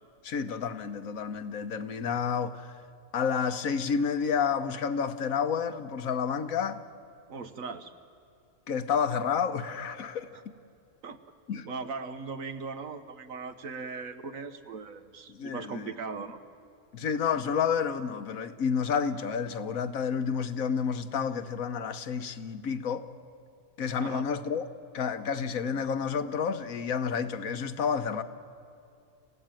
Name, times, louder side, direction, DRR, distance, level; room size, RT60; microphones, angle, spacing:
voice 1, 0.2-2.7 3.1-6.8 8.7-10.3 11.5-11.7 15.3-15.9 16.9-23.1 23.8-24.7 24.9-28.2, left 6 dB, 75° left, 1.4 m, -30 dB
voice 2, 7.3-7.9 10.3-10.4 11.0-11.2 11.6-16.4 24.0-24.2, right 4 dB, 70° right, 1.5 m, -39 dB
28.0 x 16.0 x 9.0 m
omnidirectional pair, 1.5 m